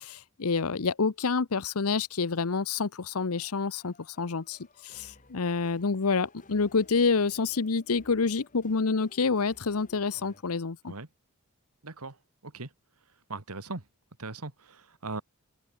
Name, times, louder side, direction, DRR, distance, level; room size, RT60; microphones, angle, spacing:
voice 1, 0.0-10.9, left 4 dB, 75° left, 0.8 m, -28 dB
sound 1, 3.2-10.4, left 2 dB, 35° left, 7.0 m, -57 dB
voice 2, 11.8-12.2 12.4-12.7 13.3-13.9 14.2-15.2, right 3 dB, 90° right, 2.1 m, -39 dB
head